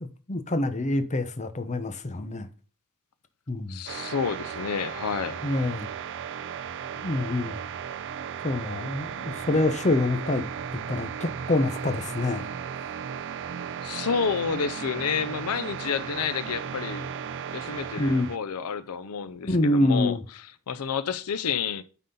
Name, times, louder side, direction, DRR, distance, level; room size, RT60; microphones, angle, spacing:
voice 1, 0.0-2.5 3.5-3.8 5.4-5.9 7.0-7.6 8.4-10.4 10.7-12.5 18.0-18.3 19.4-20.2, left 2 dB, 30° left, 0.8 m, -26 dB
voice 2, 3.7-5.4 13.8-17.1 17.5-20.2 20.7-21.8, left 6 dB, 90° left, 0.6 m, -29 dB
sound 1, 3.9-18.4, right 7 dB, 55° right, 0.5 m, -35 dB
9.2 x 4.1 x 3.8 m
head